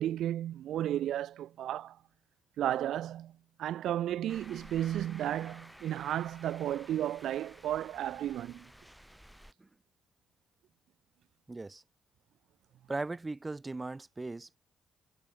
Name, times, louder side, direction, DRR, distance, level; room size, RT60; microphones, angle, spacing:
voice 1, 0.0-2.0 2.6-3.3 3.6-8.7, right 12 dB, 75° right, 2.1 m, -33 dB
sound 1, 4.3-9.5, equal, ahead, 5.7 m, -54 dB
voice 2, 11.5-11.8 12.9-14.6, right 2 dB, 20° right, 1.6 m, -38 dB
cardioid pair, 90°, 0 cm